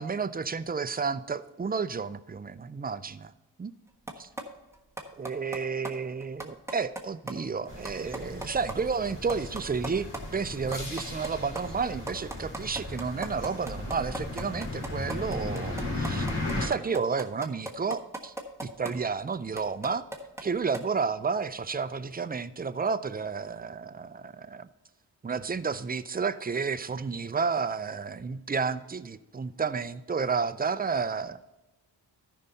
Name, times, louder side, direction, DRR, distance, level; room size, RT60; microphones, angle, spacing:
voice 1, 0.0-3.3 3.6-3.7 4.2-4.3 5.2-16.3 16.5-18.3 18.6-20.0 20.4-24.7 25.2-31.5, right 5 dB, 20° right, 12 dB, 0.5 m, -31 dB
sound 1, 4.1-4.4 4.7-5.6 5.8-5.9 6.2-7.0 7.3-7.4 7.6-8.7 9.0-9.1 9.3-10.2 10.5-18.9 19.3-20.5 20.7-20.8, right 1 dB, 5° right, 1.3 m, -37 dB
sound 2, 7.7-16.7, left 2 dB, 85° left, 3.1 m, -36 dB
13.5 x 5.6 x 4.0 m, 1.1 s
wide cardioid pair, 95°, 42 cm